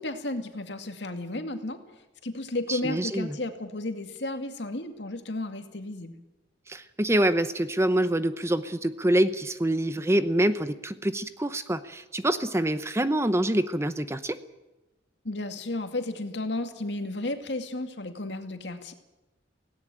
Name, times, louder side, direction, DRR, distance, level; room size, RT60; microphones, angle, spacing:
voice 1, 0.0-1.8 2.2-6.1 15.2-18.9, left 2 dB, 70° left, 7 dB, 2.2 m, -33 dB
voice 2, 2.7-3.4 6.7-14.4, right 1 dB, 15° right, 12 dB, 0.8 m, -26 dB
17.5 x 17.5 x 9.0 m, 1.0 s
head